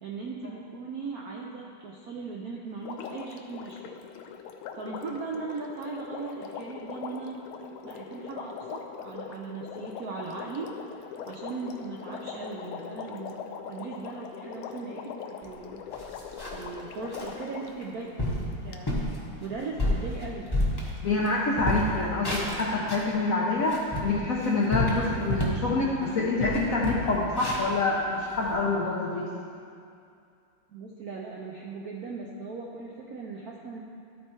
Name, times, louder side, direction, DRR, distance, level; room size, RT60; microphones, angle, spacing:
voice 1, 0.0-4.0 4.8-7.4 7.8-10.7 11.3-13.4 13.7-15.8 16.5-19.0 19.4-20.5 30.7-33.8, right 4 dB, 75° right, -2 dB, 0.8 m, -38 dB
Water, 2.8-17.8 18.7-18.8, left 7 dB, 90° left, 1.5 m, -41 dB
sound 1, 15.4-15.5 15.9-16.7 17.1-17.3 17.8-17.9 18.2-18.5 18.9-19.1 19.6-21.3 21.5-23.1 23.5-25.7 26.0-26.1 26.4-28.5, left 1 dB, 20° left, 0.7 m, -30 dB
voice 2, 21.0-29.3, left 3 dB, 65° left, -4 dB, 0.8 m, -26 dB
12.5 x 4.3 x 4.5 m, 2.5 s
omnidirectional pair, 2.3 m